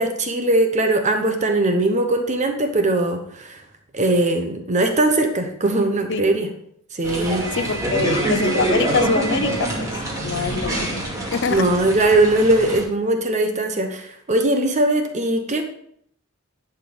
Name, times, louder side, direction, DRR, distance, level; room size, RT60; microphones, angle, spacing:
voice 1, 0.0-3.6 3.9-6.5 6.9-7.7 11.5-15.6, right 2 dB, 35° right, 5 dB, 0.9 m, -20 dB
sound 1, 7.0-12.8, right 1 dB, 15° right, 2.4 m, -25 dB
voice 2, 7.5-9.9 10.2-11.0 11.3-11.7, left 4 dB, 60° left, 11 dB, 0.7 m, -24 dB
11.0 x 4.6 x 5.1 m, 0.67 s
head